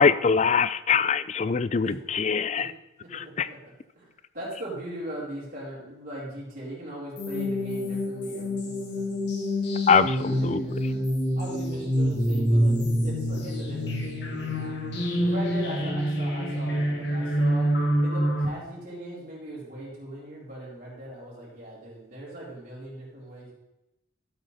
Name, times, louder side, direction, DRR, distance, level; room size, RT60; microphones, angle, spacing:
voice 1, 0.0-2.7 3.4-3.5 9.9-10.1 10.4-10.6, left 5 dB, 35° left, 16 dB, 0.3 m, -22 dB
voice 2, 3.0-3.6 3.9-4.1 4.3-9.3 10.0-11.0 11.4-14.7 15.2-17.7 18.0-23.5, right 1 dB, 45° right, -8 dB, 4.0 m, -39 dB
sound 1, 7.2-18.5, equal, 55° left, 1.8 m, -26 dB
13.0 x 7.9 x 4.1 m, 0.94 s
head